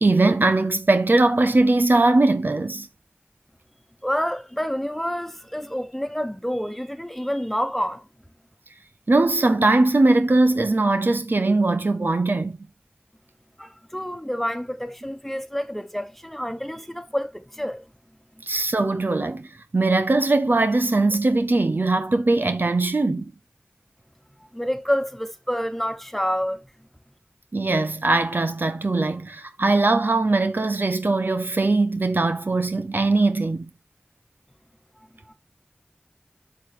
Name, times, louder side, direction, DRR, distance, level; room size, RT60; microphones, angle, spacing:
voice 1, 0.0-2.9 9.1-12.6 18.4-23.3 27.5-33.7, right 2 dB, 65° right, 0.6 m, -20 dB
voice 2, 4.0-8.1 13.6-17.8 24.4-26.6 35.3-35.4, equal, 5° left, 1.3 m, -28 dB
7.2 x 6.3 x 3.6 m
wide cardioid pair, 40°, 4 cm